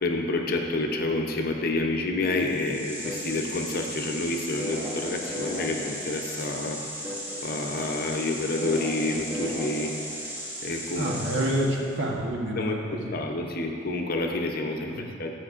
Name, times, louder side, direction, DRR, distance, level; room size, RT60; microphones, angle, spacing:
voice 1, 0.0-6.8 7.4-10.2 10.6-11.1 11.4-11.5 12.6-15.3, left 2 dB, 50° left, 2 dB, 0.6 m, -29 dB
sound 1, 2.3-11.9, equal, 10° right, 0.9 m, -35 dB
voice 2, 10.9-13.1 14.9-15.1, right 1 dB, 60° right, -2 dB, 1.1 m, -28 dB
15.0 x 5.1 x 2.5 m, 2.4 s
head